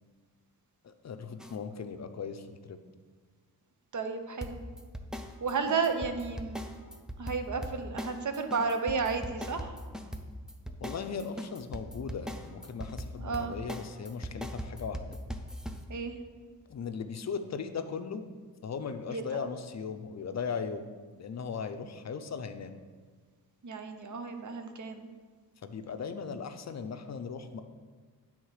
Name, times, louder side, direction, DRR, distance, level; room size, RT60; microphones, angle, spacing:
voice 1, 0.8-2.8 10.8-15.0 16.7-18.2 18.6-20.9 21.2-22.7 25.6-27.6, left 6 dB, 45° left, 8 dB, 0.5 m, -38 dB
sound 1, 1.4-1.6 4.4-15.8, equal, ahead, 0.4 m, -40 dB
voice 2, 3.9-4.6 5.4-6.7 7.2-9.7 13.2-13.5 15.9-16.2 19.1-19.5 23.6-25.1, right 5 dB, 50° right, 7 dB, 0.7 m, -33 dB
10.0 x 3.6 x 4.8 m, 1.5 s
wide cardioid pair, 110°, 37 cm